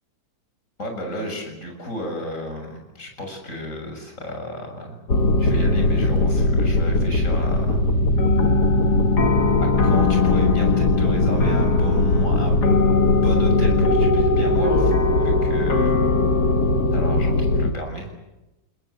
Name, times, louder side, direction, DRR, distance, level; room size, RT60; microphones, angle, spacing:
voice 1, 0.8-5.0 5.4-7.8 9.6-12.6 13.2-16.0 16.9-18.1, equal, 40° left, 3 dB, 7.4 m, -33 dB
sound 1, 5.1-17.7, left 2 dB, 55° left, 2.4 m, -19 dB
29.5 x 21.0 x 8.1 m, 1.0 s
omnidirectional pair, 2.1 m